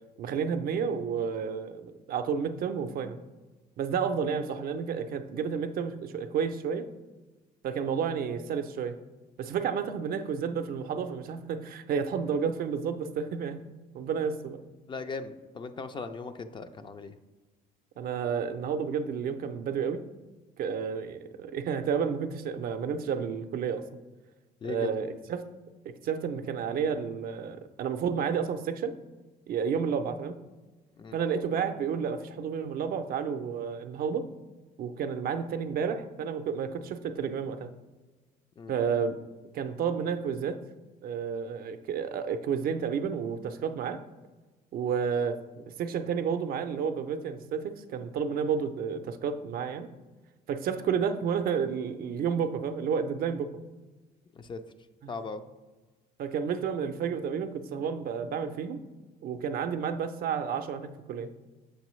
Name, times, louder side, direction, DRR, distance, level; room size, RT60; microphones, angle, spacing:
voice 1, 0.2-3.2 3.8-6.9 7.6-9.0 9.4-13.6 13.9-14.6 18.0-20.0 20.6-23.9 24.7-25.5 25.8-28.9 29.5-30.4 31.1-34.3 34.8-37.7 38.7-39.2 39.5-40.6 41.0-44.0 44.7-49.9 50.5-53.5 56.2-58.8 59.2-61.3, right 6 dB, 60° right, 8 dB, 0.5 m, -31 dB
voice 2, 14.9-17.2 24.6-24.9 31.0-31.2 38.6-38.7 54.4-54.6 55.1-55.4, left 4 dB, 30° left, 10 dB, 0.4 m, -38 dB
6.6 x 5.3 x 3.1 m, 1.2 s
cardioid pair, 110°, 17 cm